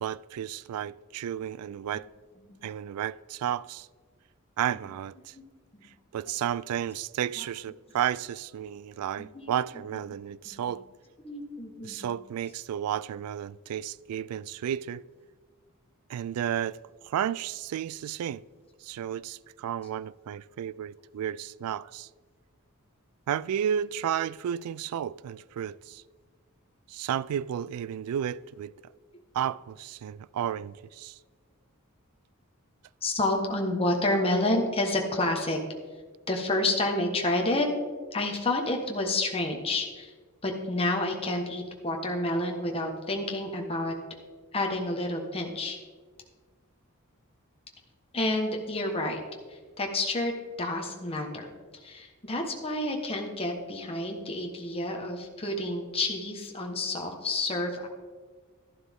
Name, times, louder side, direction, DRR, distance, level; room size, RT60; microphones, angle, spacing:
voice 1, 0.0-2.1 2.6-3.9 4.6-5.4 6.1-10.8 11.8-15.0 16.1-16.8 17.0-18.4 18.8-22.1 23.3-26.0 26.9-28.7 29.3-31.2, right 9 dB, 85° right, 0.3 m, -32 dB
voice 2, 9.2-9.5 10.5-10.6 11.2-12.1 33.0-35.6 36.3-37.7 38.1-40.1 40.4-43.9 44.5-45.8 48.1-49.2 49.8-50.3 50.6-51.5 51.8-57.9, left 2 dB, 25° left, 1.2 m, -29 dB
12.0 x 11.5 x 3.6 m
head